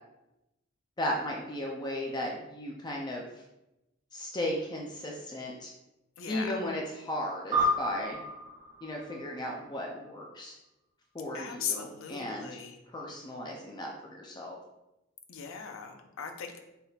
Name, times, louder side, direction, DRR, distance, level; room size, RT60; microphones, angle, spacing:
voice 1, 1.0-3.4 4.1-5.7 6.3-8.2 8.8-10.6 11.1-12.5 12.9-14.6, left 1 dB, 20° left, -1 dB, 0.4 m, -35 dB
voice 2, 6.2-6.5 11.3-12.8 15.3-16.6, left 7 dB, 85° left, 5 dB, 0.5 m, -38 dB
sound 1, 7.5-10.2, equal, 25° right, 1.3 m, -32 dB
4.2 x 3.4 x 2.3 m, 0.93 s
head